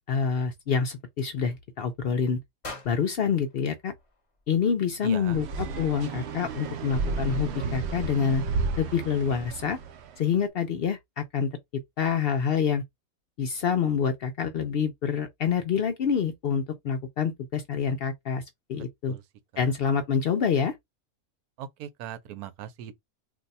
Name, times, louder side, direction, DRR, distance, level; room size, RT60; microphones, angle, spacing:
voice 1, 0.1-2.4 2.8-3.9 4.5-8.4 8.8-9.8 10.2-11.5 12.0-12.8 13.4-18.4 18.7-19.2 19.6-20.7, left 6 dB, 75° left, 0.5 m, -27 dB
sound 1, 2.6-4.8, left 3 dB, 30° left, 0.7 m, -45 dB
voice 2, 5.0-5.4 18.8-19.2 21.6-22.9, right 9 dB, 90° right, 1.1 m, -40 dB
sound 2, 5.3-10.1, right 4 dB, 65° right, 0.6 m, -32 dB
2.6 x 2.1 x 4.0 m
omnidirectional pair, 1.6 m